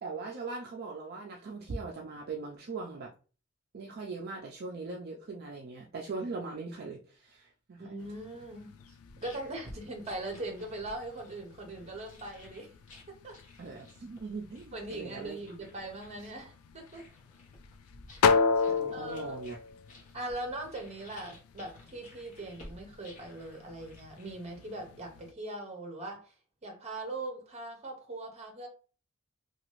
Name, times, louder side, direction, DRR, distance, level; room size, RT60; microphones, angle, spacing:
voice 1, 0.0-3.1 3.7-7.8 13.6-15.4 18.7-19.6, right 3 dB, 45° right, 0 dB, 0.4 m, -40 dB
voice 2, 7.8-8.7 9.2-12.7 13.1-13.4 14.7-17.0 18.1-18.2 18.9-19.4 20.1-26.3 26.6-28.7, right 2 dB, 30° right, 3 dB, 0.9 m, -40 dB
sound 1, 8.0-25.3, left 5 dB, 70° left, 0.3 m, -36 dB
sound 2, 8.8-24.9, left 1 dB, 35° left, 0.9 m, -55 dB
2.9 x 2.3 x 3.0 m, 0.36 s
head